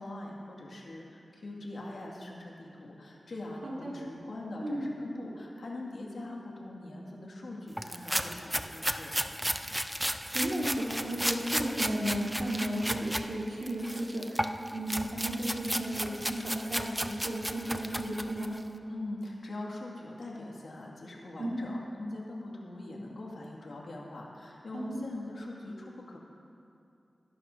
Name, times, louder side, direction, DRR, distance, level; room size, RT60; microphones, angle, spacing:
voice 1, 0.0-9.1 18.9-26.2, left 2 dB, 80° left, -2 dB, 2.2 m, -42 dB
voice 2, 3.6-4.0 4.6-4.8 10.3-18.5 21.4-21.6 24.7-25.1, right 1 dB, 75° right, -6 dB, 3.6 m, -34 dB
sound 1, 7.8-13.3 13.6-18.6, equal, 5° right, 0.5 m, -34 dB
22.0 x 11.5 x 2.7 m, 2.6 s
wide cardioid pair, 65°, 0 cm